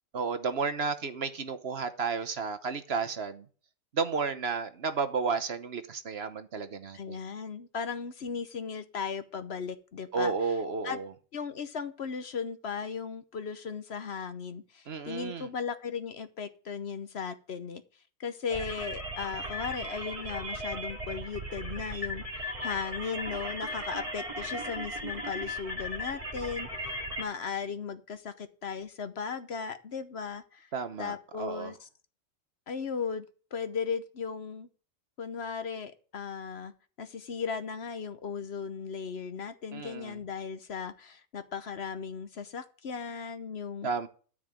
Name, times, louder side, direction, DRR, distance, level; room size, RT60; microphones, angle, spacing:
voice 1, 0.1-3.4 3.9-7.2 10.1-11.1 14.9-15.5 30.7-31.7 39.7-40.2 43.8-44.1, right 5 dB, 55° right, 9 dB, 1.1 m, -32 dB
voice 2, 6.9-10.6 10.8-11.0 11.3-17.8 18.2-30.7 31.0-31.9 32.7-34.7 35.2-36.7 37.0-43.9, left 6 dB, 55° left, 11 dB, 1.1 m, -37 dB
sound 1, 18.5-27.2, equal, 25° right, 2.8 m, -37 dB
13.0 x 5.0 x 8.8 m, 0.40 s
omnidirectional pair, 1.4 m